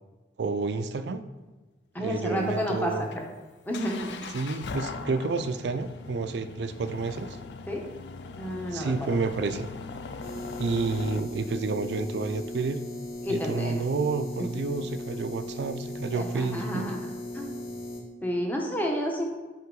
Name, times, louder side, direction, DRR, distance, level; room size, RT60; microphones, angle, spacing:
voice 1, 0.4-1.2 2.0-3.1 4.3-7.4 8.7-9.7 10.6-12.8 13.3-16.9, right 4 dB, 75° right, 10 dB, 0.4 m, -30 dB
voice 2, 1.9-3.2 3.7-4.3 7.7-7.9 8.4-9.2 13.2-13.7 16.2-17.1 17.3-17.5 18.2-19.2, equal, 10° left, 0 dB, 0.9 m, -30 dB
sound 1, 2.1-11.2, left 4 dB, 75° left, 0.4 m, -41 dB
sound 2, 10.2-18.0, left 1 dB, 55° left, 1.2 m, -38 dB
5.6 x 5.1 x 3.8 m, 1.2 s
head